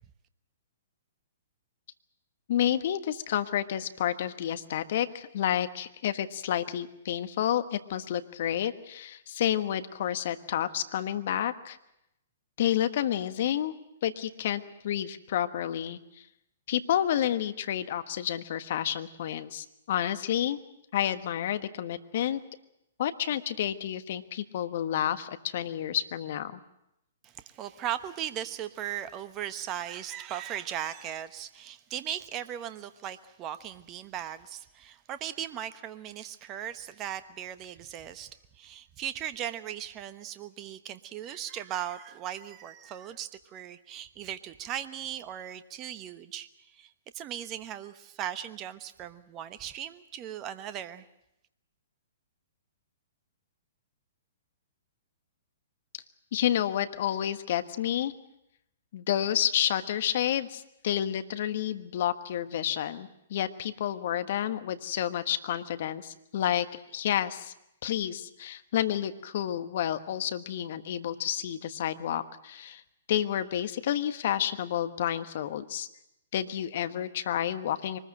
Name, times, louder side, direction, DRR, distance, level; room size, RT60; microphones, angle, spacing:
voice 1, 2.5-11.8 12.6-13.7 14.0-16.0 16.7-20.6 20.9-22.4 23.0-26.6 55.9-56.0 56.3-58.1 58.9-66.7 66.9-67.5 67.8-72.8 73.1-75.9 76.3-78.0, left 11 dB, 55° left, 11 dB, 1.4 m, -30 dB
voice 2, 27.2-51.0, right 10 dB, 30° right, 11 dB, 1.1 m, -38 dB
23.5 x 20.0 x 7.7 m, 0.83 s
figure-of-eight pair, 120°, 0 cm